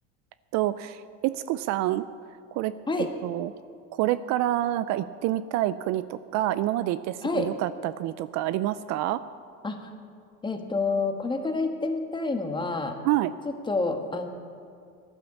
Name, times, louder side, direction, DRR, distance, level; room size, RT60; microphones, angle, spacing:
voice 1, 0.5-2.1 2.5-2.7 3.0-3.5 3.9-9.2 13.0-13.3, right 14 dB, 55° right, 15 dB, 0.5 m, -27 dB
voice 2, 10.4-13.0 13.4-14.3, left 3 dB, 15° left, 5 dB, 1.5 m, -28 dB
15.0 x 11.5 x 7.1 m, 2.3 s
supercardioid pair, 125°, 34 cm